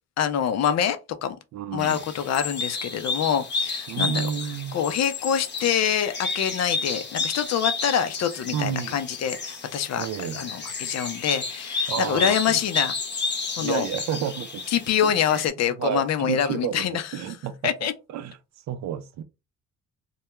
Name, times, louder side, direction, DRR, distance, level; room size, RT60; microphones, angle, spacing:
voice 1, 0.2-1.4 1.7-4.2 4.7-13.0 13.6-13.9 14.7-17.3 17.6-17.9, left 8 dB, 60° left, 0.5 m, -25 dB
voice 2, 1.5-2.0 3.9-4.8 8.5-9.0 10.0-10.4 11.9-12.6 13.6-14.7 15.8-17.7 18.1-18.3 18.7-19.2, right 9 dB, 65° right, 0.5 m, -30 dB
sound 1, 1.8-15.5, left 4 dB, 35° left, 0.8 m, -31 dB
2.2 x 2.2 x 2.9 m
cardioid pair, 90°, 30 cm